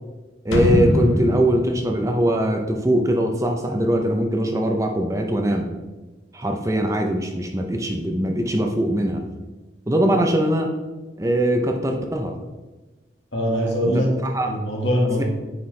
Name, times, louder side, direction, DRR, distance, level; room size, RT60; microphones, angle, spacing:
voice 1, 0.4-5.7 6.3-9.2 9.9-10.7 11.2-12.4 13.8-14.5, right 1 dB, 15° right, 3 dB, 0.5 m, -21 dB
sound 1, 0.5-3.3 3.6-3.7, left 1 dB, 90° left, 1.0 m, -23 dB
voice 2, 13.3-14.2 14.5-15.2, equal, 70° left, -1 dB, 1.8 m, -22 dB
9.2 x 4.4 x 3.2 m, 1.2 s
head